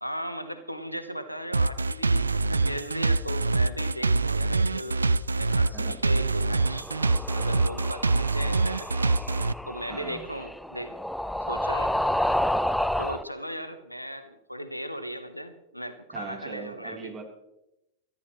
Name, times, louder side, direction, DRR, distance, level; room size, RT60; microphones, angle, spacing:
voice 1, 0.0-6.9 7.3-8.9 9.7-10.9 11.5-11.9 12.3-12.4 13.0-17.1, equal, 90° left, 11 dB, 1.2 m, -37 dB
sound 1, 1.5-9.5, right 3 dB, 75° right, 0.4 m, -24 dB
sound 2, 6.5-13.2, left 1 dB, ahead, 0.6 m, -30 dB
voice 2, 9.9-10.2 16.1-17.2, right 4 dB, 25° right, 1 dB, 3.7 m, -40 dB
22.5 x 13.5 x 3.2 m, 0.90 s
figure-of-eight pair, 90°, 0 cm